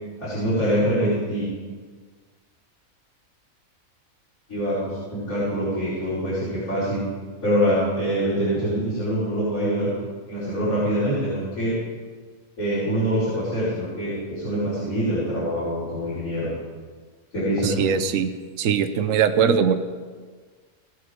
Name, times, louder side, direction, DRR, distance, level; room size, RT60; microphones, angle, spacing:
voice 1, 0.2-1.5 4.5-7.0 7.4-9.9 10.3-11.7 12.6-16.5 17.3-17.9, equal, 75° left, -12 dB, 5.3 m, -24 dB
voice 2, 17.6-18.3 18.6-19.7, right 7 dB, 65° right, 9 dB, 1.2 m, -21 dB
18.5 x 8.0 x 5.1 m, 1.5 s
omnidirectional pair, 1.5 m